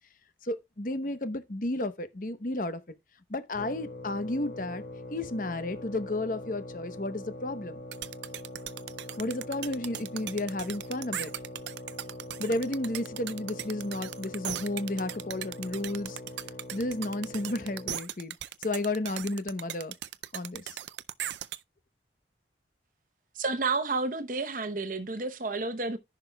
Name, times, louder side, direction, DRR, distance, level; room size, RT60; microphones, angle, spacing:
voice 1, 0.4-2.8 3.3-4.8 5.1-7.8 9.2-11.3 12.4-16.2 16.7-18.3 18.6-19.9 20.3-20.6, left 2 dB, 50° left, 0.9 m, -32 dB
sound 1, 3.5-18.1, left 1 dB, 65° left, 3.0 m, -43 dB
sound 2, 7.9-21.6, right 11 dB, 75° right, 0.4 m, -38 dB
voice 2, 23.4-26.0, right 3 dB, 50° right, 0.8 m, -30 dB
14.5 x 6.0 x 2.2 m
head